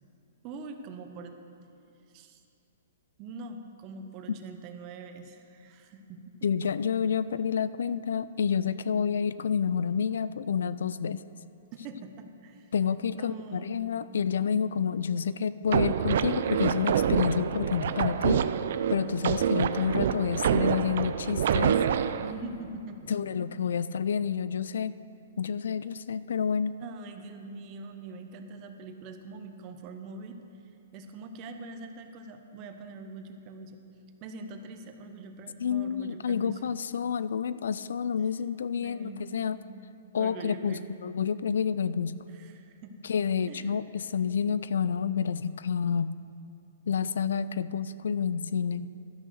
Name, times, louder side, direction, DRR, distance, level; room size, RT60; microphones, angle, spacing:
voice 1, 0.4-1.4 2.1-2.4 3.2-6.4 11.7-12.7 13.1-13.8 22.2-23.3 26.8-30.4 30.9-33.8 34.2-36.8 38.8-39.8 40.2-41.0 42.3-43.0 43.5-43.9, right 3 dB, 25° right, 6 dB, 0.7 m, -43 dB
voice 2, 6.4-11.2 12.7-18.5 18.9-21.8 23.1-25.0 25.4-26.7 35.6-39.6 40.1-42.2 43.0-46.2 46.9-48.9, left 7 dB, 80° left, 16 dB, 0.3 m, -29 dB
sound 1, 15.7-22.3, right 8 dB, 55° right, 0.4 m, -27 dB
12.5 x 6.3 x 6.5 m, 2.6 s
hypercardioid pair, 165°, 0 cm